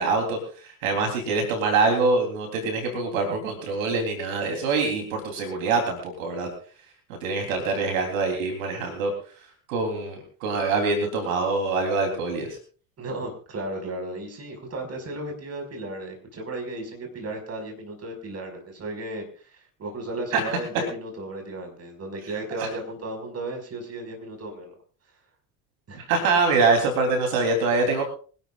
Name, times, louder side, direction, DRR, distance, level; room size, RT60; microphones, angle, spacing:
voice 1, 0.0-6.5 7.1-9.1 9.7-12.5 20.3-20.4 26.1-28.0, right 3 dB, 80° right, 4 dB, 3.6 m, -24 dB
voice 2, 13.0-24.7 25.9-26.0, right 2 dB, 35° right, 3 dB, 5.5 m, -35 dB
25.0 x 12.0 x 2.5 m, 0.40 s
hypercardioid pair, 70°, 41 cm